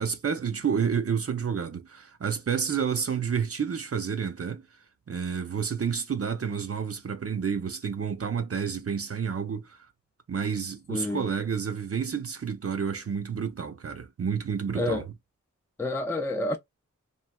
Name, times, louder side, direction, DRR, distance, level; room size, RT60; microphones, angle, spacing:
voice 1, 0.0-4.6 5.1-9.9 10.3-15.1, right 6 dB, 50° right, 0.5 m, -30 dB
voice 2, 10.9-11.3 14.8-15.0 15.8-16.6, left 1 dB, 10° left, 0.4 m, -28 dB
3.1 x 2.6 x 2.3 m
wide cardioid pair, 60°, 31 cm